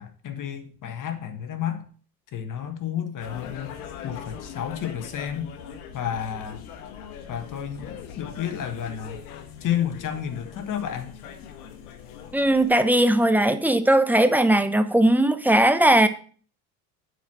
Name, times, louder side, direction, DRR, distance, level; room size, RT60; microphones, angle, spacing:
voice 1, 0.0-1.8 2.3-3.8 4.0-5.5 5.9-6.6 7.3-7.9 8.2-9.2 9.6-11.2, left 9 dB, 45° left, 1.6 m, -31 dB
sound 1, 3.2-12.8, left 8 dB, 85° left, 1.3 m, -41 dB
voice 2, 12.3-16.1, right 1 dB, 5° right, 0.8 m, -19 dB
8.9 x 4.8 x 6.0 m
supercardioid pair, 90°, 45 cm